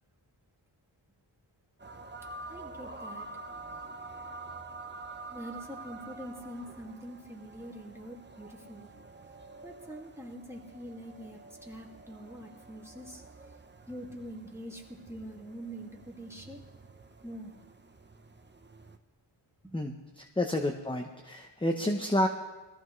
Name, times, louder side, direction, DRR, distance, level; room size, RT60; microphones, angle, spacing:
sound 1, 1.8-19.0, right 3 dB, 20° right, 0.7 m, -48 dB
voice 1, 2.5-3.2 5.3-8.9 9.6-13.2 13.9-16.6 17.2-17.5 19.6-19.8, equal, 5° right, -1 dB, 2.1 m, -44 dB
voice 2, 19.7-22.3, left 1 dB, 10° left, 3 dB, 0.8 m, -30 dB
21.0 x 14.5 x 3.2 m, 1.2 s
wide cardioid pair, 90°, 49 cm